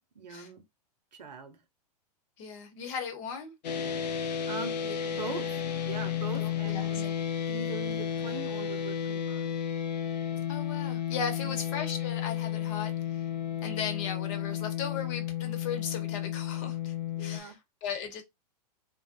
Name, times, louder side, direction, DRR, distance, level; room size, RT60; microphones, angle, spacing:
voice 1, 0.1-0.6 1.1-1.6 4.1-4.8 5.0-7.1 7.5-9.6 11.4-11.6 17.2-17.6, right 4 dB, 85° right, 0.8 m, -41 dB
voice 2, 2.4-3.5 4.8-4.9 6.3-7.1 10.5-13.3 13.6-18.2, left 6 dB, 50° left, 0.9 m, -37 dB
sound 1, 3.6-17.4, left 9 dB, 75° left, 0.5 m, -32 dB
2.6 x 2.1 x 2.6 m
hypercardioid pair, 110°, 21 cm